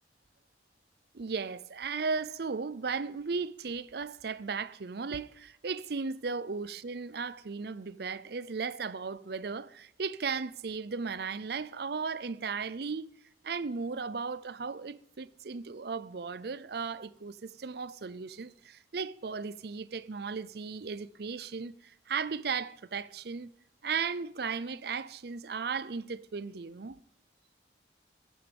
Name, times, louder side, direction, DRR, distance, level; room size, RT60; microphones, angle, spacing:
voice 1, 1.1-13.1 13.4-23.5 23.8-27.0, right 5 dB, 60° right, 0.5 m, -36 dB
16.0 x 11.0 x 5.3 m
head